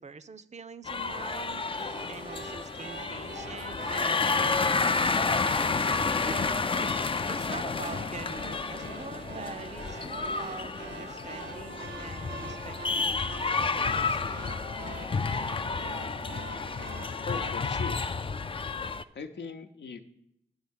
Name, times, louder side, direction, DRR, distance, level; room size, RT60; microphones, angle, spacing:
voice 1, 0.0-1.6 2.0-5.7 6.2-6.7 7.3-14.3, right 5 dB, 40° right, 13 dB, 0.5 m, -44 dB
sound 1, 0.9-19.0, left 4 dB, 30° left, 0.4 m, -30 dB
sound 2, 1.5-17.5, right 3 dB, 90° right, 1.1 m, -44 dB
voice 2, 17.2-18.0 19.1-20.0, left 5 dB, 75° left, 7 dB, 0.8 m, -39 dB
11.0 x 3.7 x 7.1 m, 0.79 s
cardioid pair, 60°, 18 cm